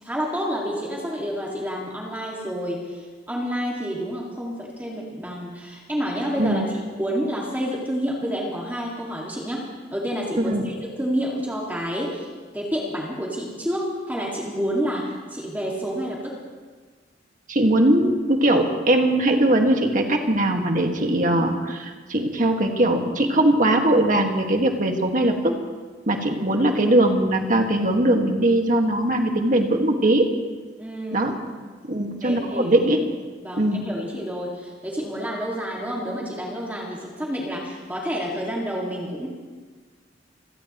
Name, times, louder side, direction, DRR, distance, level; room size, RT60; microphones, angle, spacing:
voice 1, 0.0-9.6 9.9-12.3 12.5-16.3 30.8-31.3 32.2-32.8 33.4-39.3, equal, 10° right, -4 dB, 2.1 m, -29 dB
voice 2, 10.4-10.7 17.5-25.6 26.1-30.3 31.1-31.3 31.9-33.0 33.6-33.8, right 1 dB, 45° right, 3 dB, 1.8 m, -20 dB
27.5 x 17.5 x 3.1 m, 1.4 s
head